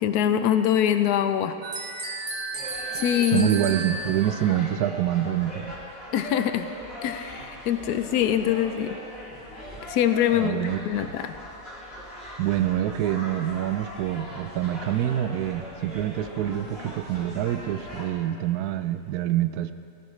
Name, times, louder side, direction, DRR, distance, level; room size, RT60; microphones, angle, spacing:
voice 1, 0.0-1.5 2.9-3.5 6.1-6.7 7.0-9.0 9.9-11.3, left 10 dB, 85° left, 9 dB, 1.1 m, -24 dB
sound 1, 1.6-4.5, right 3 dB, 50° right, 1.5 m, -33 dB
sound 2, 2.5-18.1, left 1 dB, 40° left, 3.6 m, -40 dB
voice 2, 3.3-5.8 10.3-10.8 12.4-19.7, right 12 dB, 80° right, 11 dB, 1.1 m, -26 dB
18.5 x 16.5 x 3.2 m, 2.5 s
omnidirectional pair, 1.6 m